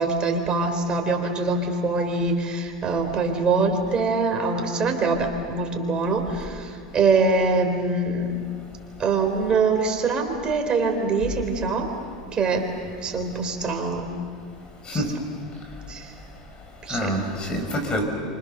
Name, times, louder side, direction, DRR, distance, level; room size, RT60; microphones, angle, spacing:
voice 1, 0.0-8.3 9.0-11.9 12.3-12.6 13.0-14.1 14.9-15.0 15.9-16.1 16.9-17.1, right 3 dB, 25° right, 4 dB, 4.1 m, -24 dB
voice 2, 16.9-18.0, equal, 25° left, 4 dB, 5.7 m, -27 dB
29.5 x 26.5 x 6.8 m, 2.2 s
supercardioid pair, 125°, 4 cm